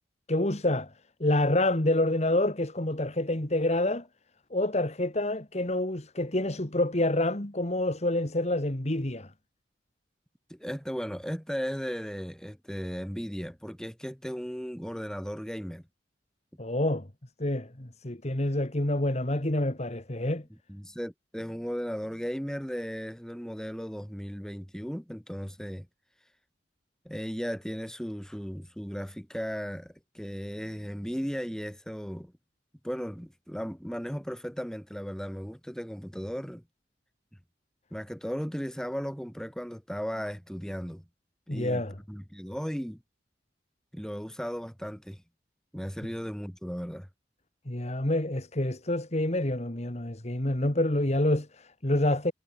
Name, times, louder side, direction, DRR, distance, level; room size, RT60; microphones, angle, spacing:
voice 1, 0.3-0.9 1.2-4.1 4.5-9.3 16.6-17.1 17.4-20.5 41.5-42.0 47.7-52.3, left 1 dB, 40° left, 2.0 m, -27 dB
voice 2, 10.5-15.8 20.7-25.9 27.0-32.3 32.8-36.6 37.9-41.0 41.5-43.0 43.9-45.2 45.7-47.1, equal, 5° left, 5.7 m, -36 dB
head